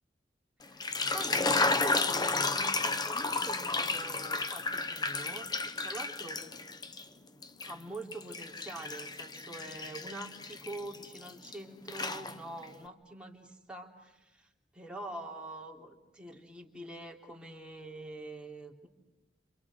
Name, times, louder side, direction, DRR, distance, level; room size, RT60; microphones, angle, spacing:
sound 1, 0.6-7.0 7.4-11.6 11.9-12.7, left 3 dB, 25° left, 1.1 m, -32 dB
voice 1, 0.6-6.7 7.6-18.9, right 2 dB, 5° right, -1 dB, 3.3 m, -45 dB
29.0 x 27.5 x 6.2 m, 1.0 s
head